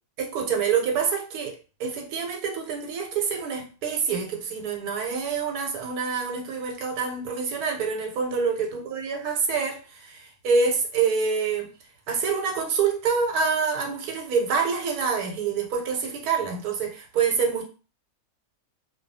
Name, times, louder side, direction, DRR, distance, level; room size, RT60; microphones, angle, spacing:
voice 1, 0.2-1.5 1.8-11.7 12.1-17.6, right 5 dB, 85° right, 2 dB, 1.2 m, -26 dB
2.3 x 2.3 x 2.6 m, 0.36 s
omnidirectional pair, 1.6 m